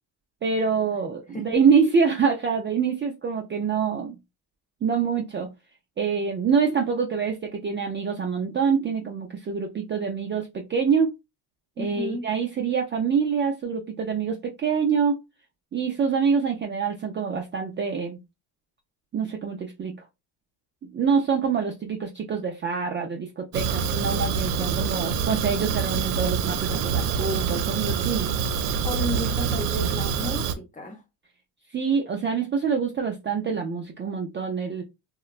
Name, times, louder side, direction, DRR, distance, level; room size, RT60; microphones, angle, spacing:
voice 1, 0.4-4.2 4.8-5.5 6.0-11.1 11.8-15.2 15.7-18.2 19.1-20.0 20.8-28.3 31.7-34.8, right 6 dB, 25° right, 0.4 m, -25 dB
voice 2, 11.8-12.3 28.8-31.0, left 1 dB, 15° left, 0.7 m, -33 dB
Fire, 23.5-30.5, right 6 dB, 90° right, 0.7 m, -26 dB
2.9 x 2.2 x 2.4 m
supercardioid pair, 95°, 48 cm